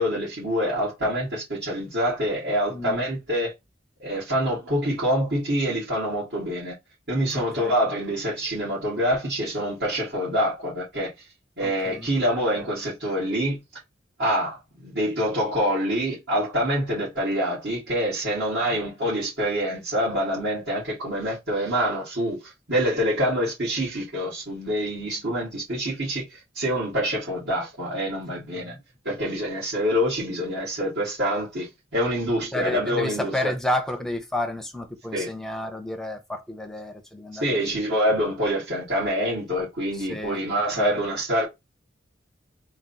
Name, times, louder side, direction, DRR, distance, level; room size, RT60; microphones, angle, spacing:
voice 1, 0.0-3.5 4.0-6.8 7.1-11.1 11.6-13.6 14.2-28.7 29.0-33.5 35.1-35.3 37.3-41.5, equal, 65° right, 2.0 m, -26 dB
voice 2, 2.7-3.0 7.3-7.7 11.6-12.1 18.6-18.8 28.5-28.8 32.5-37.8 39.9-40.4 40.8-40.9, left 1 dB, 5° left, 0.6 m, -31 dB
3.8 x 2.3 x 3.9 m
head